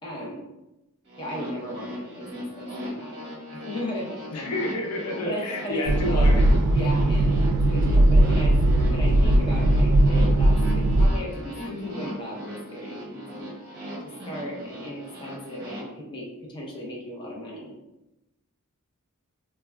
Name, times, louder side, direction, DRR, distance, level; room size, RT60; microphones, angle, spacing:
voice 1, 0.0-0.4 1.2-3.1 3.5-4.6 5.3-6.4 6.7-8.6 8.8-13.5 14.0-17.7, equal, 20° left, -4 dB, 0.6 m, -36 dB
sound 1, 1.1-15.8, equal, 50° right, 0.9 m, -39 dB
voice 2, 4.3-6.4, left 1 dB, 90° left, 0 dB, 0.6 m, -29 dB
sound 2, 5.9-11.1, right 1 dB, 85° right, 0.3 m, -19 dB
3.4 x 2.2 x 2.2 m, 0.95 s
head